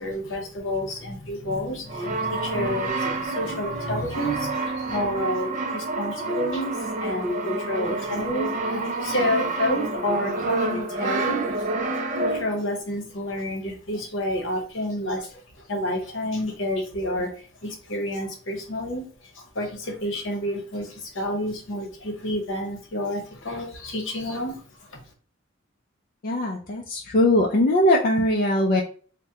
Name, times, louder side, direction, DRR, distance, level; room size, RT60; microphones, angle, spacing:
voice 1, 0.0-11.7 12.2-24.6 24.9-25.0, left 1 dB, 70° left, 2 dB, 0.9 m, -29 dB
Brass instrument, 1.9-12.7, right 2 dB, 40° right, 0.4 m, -28 dB
voice 2, 26.2-28.8, left 1 dB, 45° left, -1 dB, 0.4 m, -20 dB
3.4 x 2.1 x 2.7 m, 0.43 s
head